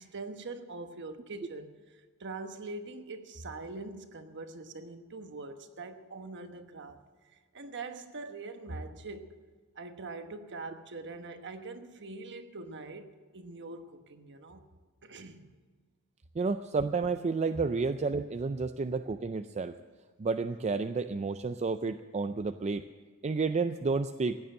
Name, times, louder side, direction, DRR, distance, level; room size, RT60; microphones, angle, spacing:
voice 1, 0.0-7.0 7.5-9.4 9.7-14.6 15.0-15.5, right 3 dB, 55° right, 1.2 m, -43 dB
voice 2, 16.4-19.8 20.2-22.9 23.2-24.4, right 4 dB, 30° right, 0.4 m, -31 dB
16.0 x 9.6 x 7.6 m
head